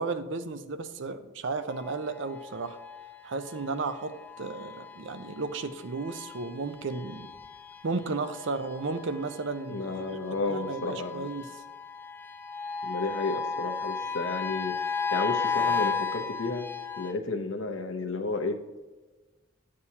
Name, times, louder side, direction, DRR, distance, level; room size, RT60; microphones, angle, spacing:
voice 1, 0.0-2.8 3.2-7.3 7.8-10.2 10.5-11.5, right 3 dB, 65° right, 11 dB, 0.5 m, -34 dB
sound 1, 1.7-17.1, left 5 dB, 10° left, 0.3 m, -35 dB
voice 2, 9.7-11.3 12.8-16.7 17.0-18.6, left 3 dB, 75° left, 6 dB, 0.8 m, -32 dB
9.5 x 7.5 x 2.8 m, 1.2 s
head